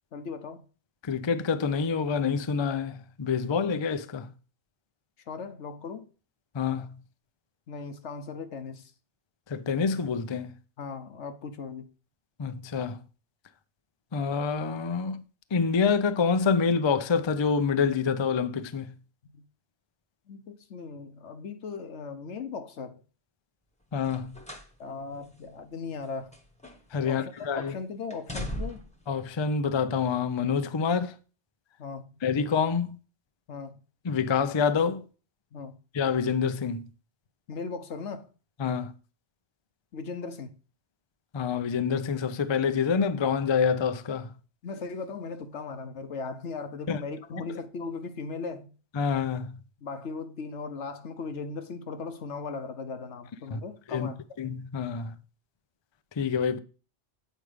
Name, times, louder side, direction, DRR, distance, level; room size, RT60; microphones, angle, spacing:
voice 1, 0.1-0.6 5.3-6.0 7.7-8.9 10.8-11.9 19.3-19.4 20.3-22.9 24.8-26.3 27.0-28.8 31.8-32.1 33.5-33.7 35.5-35.8 37.5-38.3 39.9-40.5 44.6-48.7 49.8-54.2, left 4 dB, 80° left, 1.2 m, -38 dB
voice 2, 1.0-4.3 6.5-7.0 9.5-10.5 12.4-13.0 14.1-15.2 15.5-18.9 23.9-24.4 26.9-27.7 29.1-31.1 32.2-33.0 34.0-35.0 35.9-36.9 38.6-38.9 41.3-44.3 46.9-47.0 48.9-49.5 53.5-53.6 53.9-54.1 54.4-55.2 56.2-56.6, left 6 dB, 35° left, 0.4 m, -27 dB
sound 1, 24.0-24.7 25.1-25.3 26.0-27.0 27.3-27.7 28.1-29.0 29.9-30.0, equal, 5° left, 1.1 m, -39 dB
8.1 x 4.9 x 5.0 m
omnidirectional pair, 1.2 m